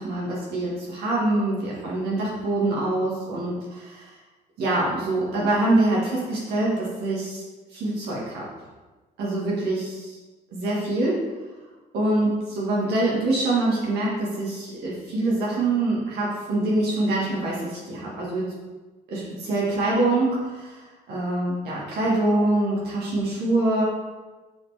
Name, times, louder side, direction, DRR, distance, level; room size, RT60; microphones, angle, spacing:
voice 1, 0.0-4.1 4.6-7.4 7.7-8.5 9.2-10.2 10.5-11.2 11.9-18.5 19.1-20.8 21.1-23.8, right 2 dB, 75° right, -5 dB, 1.8 m, -25 dB
7.0 x 4.4 x 3.4 m, 1.3 s
cardioid pair, 110°, 17 cm